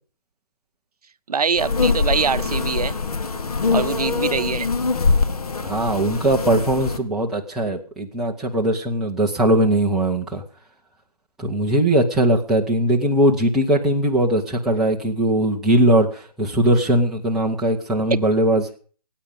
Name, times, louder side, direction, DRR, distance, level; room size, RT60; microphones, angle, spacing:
voice 1, 1.3-3.0 3.7-4.7, right 5 dB, 65° right, 0.7 m, -23 dB
sound 1, 1.6-7.0, left 4 dB, 65° left, 1.8 m, -23 dB
voice 2, 5.6-10.4 11.4-18.8, right 1 dB, ahead, 0.7 m, -20 dB
18.0 x 8.9 x 5.3 m
figure-of-eight pair, 160°, 21 cm